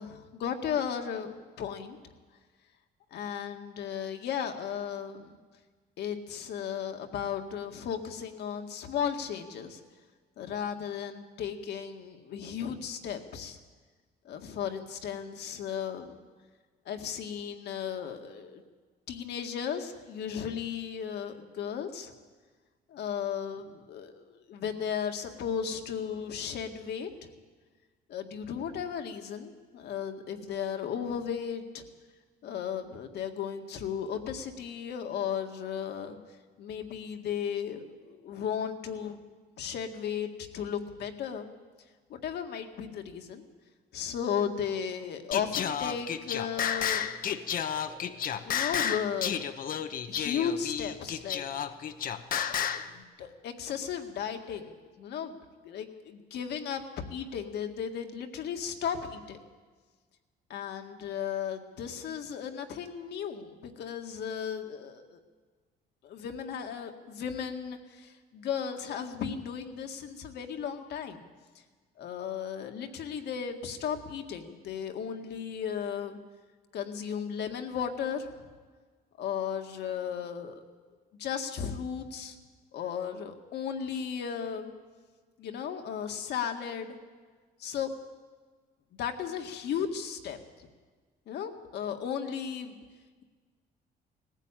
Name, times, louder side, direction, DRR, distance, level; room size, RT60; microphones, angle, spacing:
voice 1, 0.0-2.0 3.1-5.4 6.0-9.8 10.4-13.6 14.3-16.2 16.9-18.6 19.1-22.1 22.9-27.3 28.1-31.8 32.4-36.2 36.6-39.2 39.6-41.5 42.1-43.4 43.9-47.1 47.8-48.2 48.4-51.5 52.5-55.4 55.6-56.8 57.1-59.4 60.5-65.2 66.0-71.2 72.0-76.2 76.7-78.3 79.2-80.6 81.2-82.4 82.7-84.7 85.4-87.0 87.6-87.9 89.0-90.7 91.3-92.8, left 8 dB, 70° left, 5 dB, 2.0 m, -35 dB
Singing, 45.3-52.9, left 8 dB, 50° left, 1.0 m, -32 dB
19.5 x 15.0 x 9.0 m, 1.4 s
cardioid pair, 130°, 18 cm